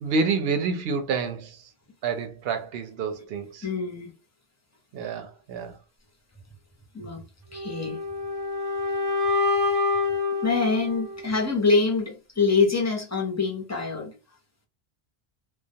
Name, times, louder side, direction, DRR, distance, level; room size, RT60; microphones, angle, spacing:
voice 1, 0.0-1.7 2.0-3.7 4.9-5.8, right 4 dB, 75° right, 0.8 m, -28 dB
voice 2, 3.6-4.1 6.9-7.2 7.5-8.0 10.4-14.1, left 4 dB, 20° left, 0.4 m, -25 dB
sound 1, 7.5-11.5, left 3 dB, 40° right, 0.6 m, -27 dB
2.3 x 2.1 x 2.7 m
omnidirectional pair, 1.0 m